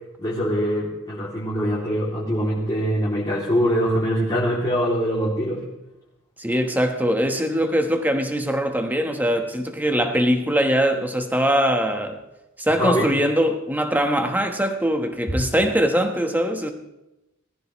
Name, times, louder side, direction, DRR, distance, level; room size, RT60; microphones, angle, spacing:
voice 1, 0.2-5.6 12.8-13.1 15.3-15.4, equal, 20° left, 2.7 m, -23 dB
voice 2, 6.4-12.2 12.6-16.7, equal, 10° right, 1.2 m, -22 dB
18.5 x 14.5 x 3.1 m
head